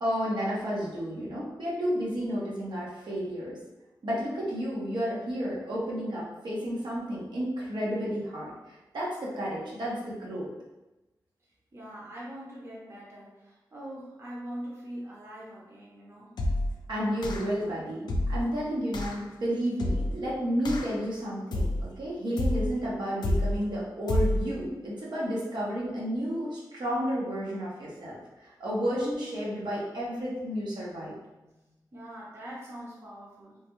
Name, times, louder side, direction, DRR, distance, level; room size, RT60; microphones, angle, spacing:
voice 1, 0.0-3.6 4.0-10.5 16.9-31.1, equal, 75° right, -6 dB, 0.9 m, -31 dB
voice 2, 11.7-16.3 31.9-33.6, equal, 35° right, -5 dB, 0.7 m, -42 dB
sound 1, 16.4-16.8 17.2-17.6 18.1-18.5 18.9-19.2 19.8-20.2 20.6-21.0 21.5-21.9 22.4-22.8 23.2-23.6 24.1-24.5, left 1 dB, 70° left, 0.4 m, -28 dB
3.1 x 2.2 x 3.0 m, 1.0 s
wide cardioid pair, 115°, 8 cm